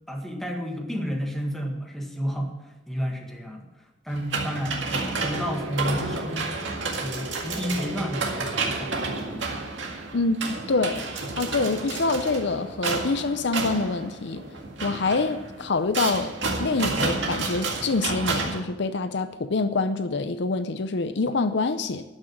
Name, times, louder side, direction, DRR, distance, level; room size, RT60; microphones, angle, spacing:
voice 1, 0.1-6.6 6.8-9.7, equal, ahead, 1.7 m, -31 dB
sound 1, 4.1-18.6, right 3 dB, 85° right, 2.0 m, -30 dB
voice 2, 10.1-11.0 11.4-14.4 14.8-22.0, left 3 dB, 65° left, 0.6 m, -26 dB
12.5 x 6.3 x 8.7 m
head